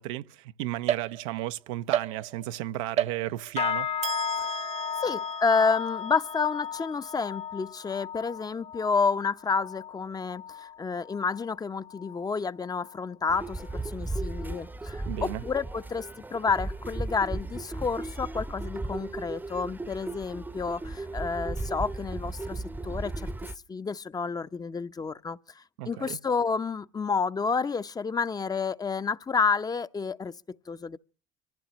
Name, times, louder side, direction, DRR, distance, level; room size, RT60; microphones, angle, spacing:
voice 1, 0.0-3.9 15.1-15.4 25.8-26.2, right 15 dB, 80° right, 0.6 m, -34 dB
sound 1, 0.9-1.5 1.9-2.6 3.0-3.6 4.0-7.5, right 10 dB, 40° right, 0.7 m, -34 dB
sound 2, 3.6-13.1 13.4-13.9 14.3-14.6 15.1-15.2, left 8 dB, 40° left, 1.4 m, -36 dB
voice 2, 4.4-4.7 5.0-16.1 16.3-23.3 23.7-25.4 25.9-31.0, left 5 dB, 25° left, 0.7 m, -30 dB
sound 3, 13.3-23.6, right 2 dB, 10° right, 0.8 m, -36 dB
25.5 x 15.0 x 3.0 m
hypercardioid pair, 80°, 17 cm